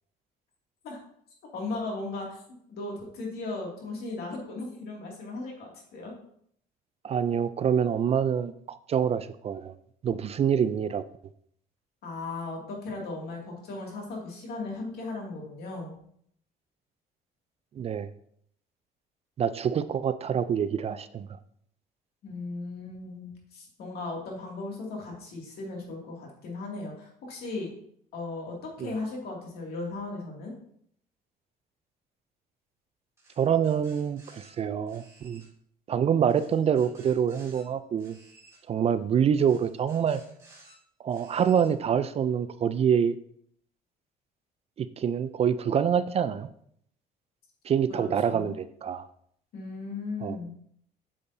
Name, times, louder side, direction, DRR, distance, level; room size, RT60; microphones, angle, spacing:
voice 1, 1.5-2.4 2.7-6.1 12.0-15.9 22.2-27.7 28.1-30.5 47.9-48.6 49.5-50.5, left 3 dB, 70° left, -1 dB, 2.4 m, -37 dB
voice 2, 7.0-9.7 10.0-11.0 17.8-18.1 19.4-21.3 28.8-28.9 33.4-35.4 35.9-38.2 38.7-40.2 41.0-43.2 44.8-46.5 47.7-49.1 50.2-50.4, right 8 dB, 35° right, 14 dB, 0.4 m, -26 dB
sound 1, 33.2-34.5 34.9-35.5 36.3-37.6 38.0-38.6 39.4-40.8 41.1-41.7, right 2 dB, 15° right, 2.7 m, -56 dB
8.4 x 7.0 x 2.7 m, 0.66 s
cardioid pair, 110°, 17 cm